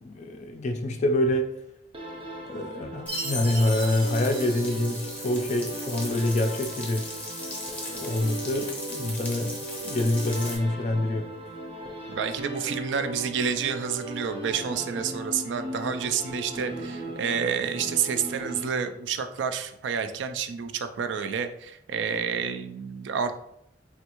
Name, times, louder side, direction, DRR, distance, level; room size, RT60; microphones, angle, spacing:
voice 1, 0.0-1.5 2.5-7.0 7.9-9.5 9.8-11.3, left 1 dB, 40° left, 5 dB, 0.3 m, -26 dB
sound 1, 1.9-19.2, right 1 dB, 30° right, 0.5 m, -37 dB
Frying (food), 3.1-10.6, left 1 dB, 10° left, 0.7 m, -38 dB
Chime, 3.1-5.5, right 1 dB, 60° right, 0.8 m, -37 dB
voice 2, 12.1-23.4, right 6 dB, 80° right, 9 dB, 0.3 m, -29 dB
3.4 x 2.3 x 2.9 m, 0.75 s
head